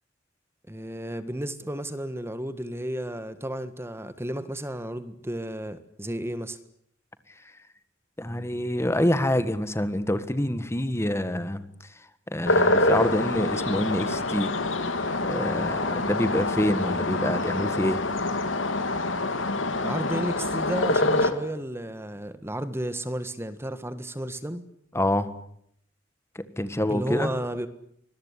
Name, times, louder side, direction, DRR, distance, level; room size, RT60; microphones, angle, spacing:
voice 1, 0.7-6.6 19.8-24.6 26.9-27.7, right 1 dB, 15° right, 12 dB, 1.6 m, -33 dB
voice 2, 8.2-11.7 12.3-14.5 15.3-18.0 24.9-25.3 26.3-27.3, left 1 dB, 15° left, 12 dB, 1.6 m, -26 dB
sound 1, 12.4-21.3, left 2 dB, 85° left, 2.9 m, -26 dB
25.5 x 21.5 x 9.9 m, 0.71 s
head